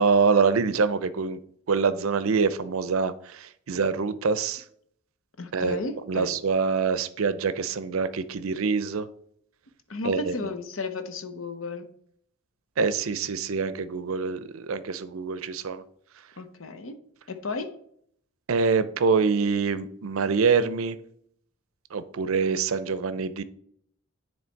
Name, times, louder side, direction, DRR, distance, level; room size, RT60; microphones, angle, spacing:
voice 1, 0.0-1.4 1.7-4.6 5.5-5.8 6.1-9.1 10.0-10.5 12.8-15.8 18.5-21.0 21.9-23.4, right 5 dB, 75° right, 14 dB, 0.5 m, -25 dB
voice 2, 5.4-6.3 9.9-11.9 16.4-17.0 17.3-17.7, left 3 dB, 70° left, 8 dB, 0.8 m, -33 dB
9.5 x 3.2 x 4.5 m, 0.67 s
head